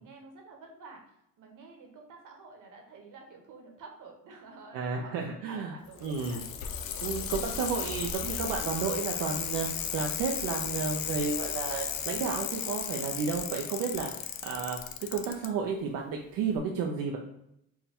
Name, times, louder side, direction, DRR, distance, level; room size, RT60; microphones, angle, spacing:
voice 1, 0.0-6.4, right 4 dB, 65° right, 2 dB, 1.1 m, -50 dB
voice 2, 4.7-5.7 6.0-6.4 7.0-17.2, right 5 dB, 90° right, 1 dB, 0.5 m, -32 dB
Bicycle, 5.9-15.5 16.6-16.7, left 9 dB, 80° left, 0.5 m, -35 dB
sound 1, 6.4-12.4, equal, 10° right, 0.8 m, -49 dB
4.4 x 2.2 x 3.5 m, 0.79 s
cardioid pair, 100°, 33 cm